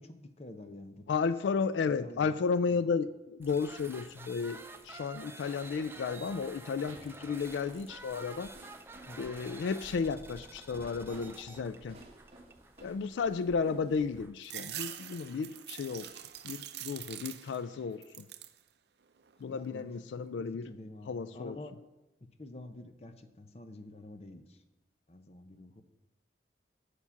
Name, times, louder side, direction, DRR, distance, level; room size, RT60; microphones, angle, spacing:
voice 1, 0.0-1.1 2.0-2.4 2.7-2.8 9.0-9.2 19.5-21.8 22.2-24.6 25.1-25.8, left 1 dB, 35° left, 8 dB, 0.7 m, -48 dB
voice 2, 1.1-8.5 9.2-12.0 12.8-16.1 16.4-18.3 19.4-20.7 21.1-21.6, left 5 dB, 85° left, 15 dB, 0.3 m, -33 dB
sound 1, 3.4-16.6, right 2 dB, 15° right, 0.4 m, -50 dB
sound 2, 6.9-14.2, right 1 dB, 35° right, 1.4 m, -54 dB
sound 3, 14.4-17.7 18.0-18.6 19.1-19.8, right 12 dB, 65° right, 0.5 m, -44 dB
8.3 x 7.2 x 5.7 m, 0.99 s
head